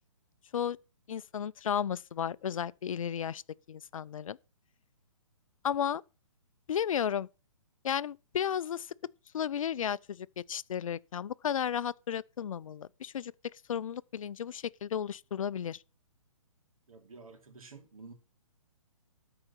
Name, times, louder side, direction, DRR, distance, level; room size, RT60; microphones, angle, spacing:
voice 1, 1.1-3.4 3.7-4.4 5.6-6.0 6.7-7.3 7.8-8.9 9.3-13.3 13.7-15.8, left 8 dB, 70° left, 0.5 m, -33 dB
voice 2, 16.9-18.1, right 4 dB, 80° right, 2.8 m, -50 dB
13.0 x 4.9 x 5.6 m
hypercardioid pair, 140°, 18 cm